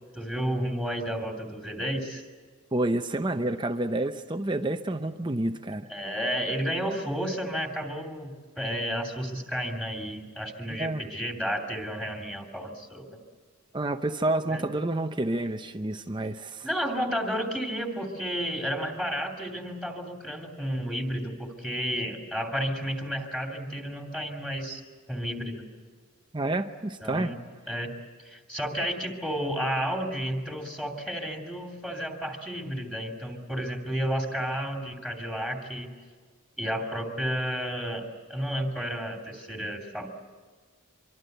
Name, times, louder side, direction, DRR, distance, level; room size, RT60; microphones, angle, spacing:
voice 1, 0.1-2.2 5.9-13.1 14.5-14.6 16.6-24.8 25.1-25.6 27.0-27.4 27.7-27.9 28.2-35.9 36.6-40.1, equal, 5° left, 1 dB, 2.8 m, -32 dB
voice 2, 2.7-5.9 10.8-11.0 13.7-16.7 26.3-27.3, right 2 dB, 20° right, 7 dB, 0.7 m, -29 dB
25.0 x 24.0 x 7.9 m, 1.5 s
head